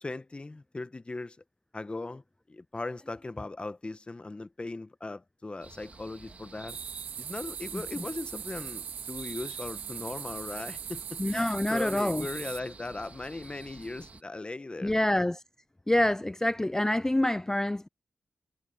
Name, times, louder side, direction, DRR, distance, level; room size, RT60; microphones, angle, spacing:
voice 1, 0.0-1.4 1.7-2.2 2.5-6.8 7.2-14.9, left 2 dB, 30° left, 1.2 m, -38 dB
sound 1, 5.6-14.2, right 3 dB, 45° right, 1.8 m, -49 dB
sound 2, 6.7-12.6, right 8 dB, 85° right, 0.8 m, -40 dB
voice 2, 7.7-8.0 11.2-12.3 14.8-15.4 15.9-17.9, left 1 dB, 15° left, 0.3 m, -27 dB
cardioid pair, 50°, 3 cm